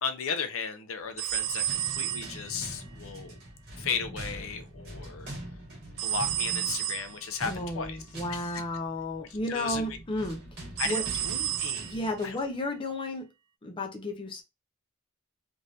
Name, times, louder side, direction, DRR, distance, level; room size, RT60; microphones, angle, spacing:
voice 1, 0.0-3.3 3.8-5.3 6.0-8.0 8.3-8.6 9.5-9.9 10.8-11.9 12.2-12.4, left 6 dB, 70° left, 0.6 m, -35 dB
sound 1, 1.1-12.5, right 1 dB, 50° right, 1.6 m, -44 dB
sound 2, 1.2-2.8 6.0-7.2 10.8-12.1, right 13 dB, 80° right, 0.3 m, -31 dB
voice 2, 7.4-11.1 11.9-13.3 13.6-14.4, left 1 dB, 25° left, 0.5 m, -33 dB
3.3 x 2.5 x 2.6 m
head